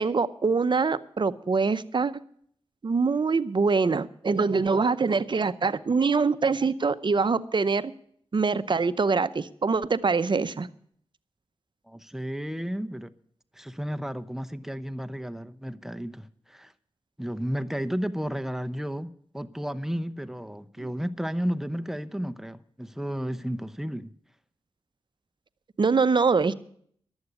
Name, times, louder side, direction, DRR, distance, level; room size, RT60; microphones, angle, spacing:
voice 1, 0.0-2.1 2.8-7.9 8.3-10.7 20.8-20.9 25.8-26.5, right 4 dB, 45° right, 0.7 m, -24 dB
voice 2, 11.9-13.1 13.5-16.7 17.2-24.1, equal, 5° right, 0.8 m, -33 dB
11.0 x 8.1 x 9.5 m
cardioid pair, 45°, 11 cm